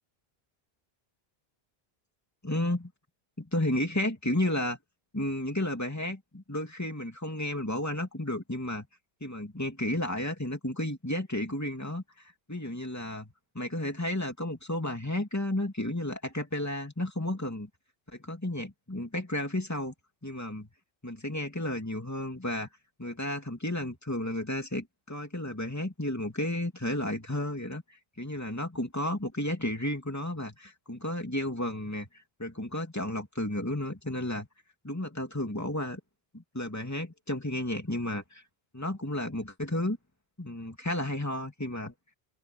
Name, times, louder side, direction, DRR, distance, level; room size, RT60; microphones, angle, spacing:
voice 1, 2.4-2.9 3.4-4.8 5.1-8.9 9.2-12.0 12.5-17.7 18.1-19.9 20.2-20.7 21.0-22.7 23.0-32.1 32.4-34.5 34.8-36.0 36.3-38.4 38.7-40.0 40.4-41.9, left 1 dB, 15° left, 2.8 m, -32 dB
open air
omnidirectional pair, 1.1 m